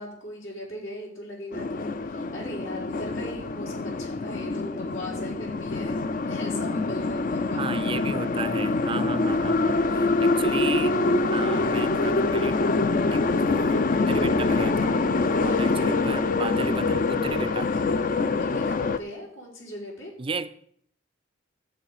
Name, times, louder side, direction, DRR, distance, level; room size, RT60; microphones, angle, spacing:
voice 1, 0.0-5.9 6.3-7.7 15.4-15.9 18.4-20.1, left 1 dB, 85° left, -3 dB, 4.7 m, -39 dB
sound 1, 1.5-19.0, left 3 dB, 40° left, 0.5 m, -25 dB
voice 2, 7.6-11.0 11.3-12.6 13.1-15.0 15.3-17.7 20.2-20.5, right 4 dB, 25° right, 14 dB, 0.4 m, -34 dB
13.0 x 8.0 x 4.9 m, 0.67 s
head